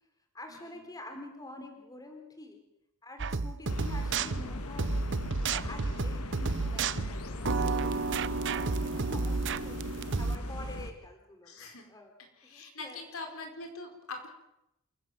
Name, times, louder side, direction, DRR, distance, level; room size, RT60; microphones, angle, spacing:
voice 1, 0.3-2.6 3.0-4.9 5.4-9.9 10.2-12.1 12.4-13.2, left 1 dB, 15° left, 4 dB, 3.7 m, -47 dB
sound 1, 3.2-10.4, right 4 dB, 55° right, 0.8 m, -32 dB
sound 2, 3.7-10.9, left 1 dB, 90° left, 2.1 m, -39 dB
voice 2, 11.4-11.9 12.4-14.3, left 3 dB, 70° left, 4 dB, 4.7 m, -43 dB
28.0 x 15.5 x 7.8 m, 0.84 s
head